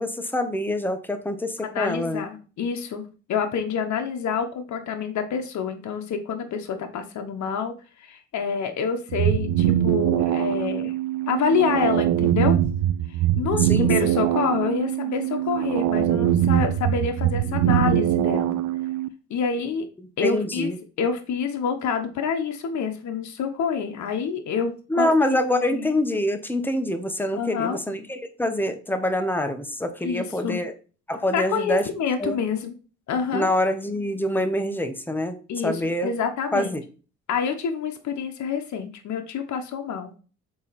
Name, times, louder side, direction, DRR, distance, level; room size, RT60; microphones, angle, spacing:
voice 1, 0.0-2.2 13.6-14.1 20.2-20.8 24.9-30.7 31.1-31.9 32.2-32.4 33.3-35.4 35.6-36.1 36.5-36.8, left 1 dB, 5° left, 8 dB, 1.2 m, -25 dB
voice 2, 1.6-10.9 11.3-12.6 13.1-18.6 19.3-19.9 20.2-20.7 21.0-25.4 25.7-25.9 27.3-27.8 30.0-30.6 31.3-32.7 33.1-33.5 35.5-36.7 37.3-40.1, left 6 dB, 70° left, 6 dB, 1.2 m, -27 dB
sound 1, 9.1-19.1, right 12 dB, 80° right, 0.6 m, -22 dB
7.4 x 4.1 x 4.2 m, 0.35 s
cardioid pair, 90°, 30 cm